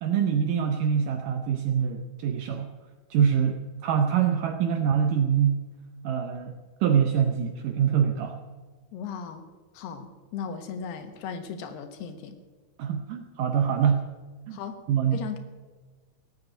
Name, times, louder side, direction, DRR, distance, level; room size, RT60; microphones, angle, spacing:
voice 1, 0.0-2.7 3.1-5.7 6.0-6.5 6.8-8.4 12.8-14.1 14.5-14.6 14.9-15.4, right 8 dB, 75° right, 6 dB, 2.0 m, -24 dB
voice 2, 8.9-9.4 9.7-12.4 14.5-14.8 15.1-15.4, left 7 dB, 85° left, 7 dB, 3.3 m, -37 dB
17.0 x 7.9 x 8.9 m, 1.3 s
omnidirectional pair, 4.6 m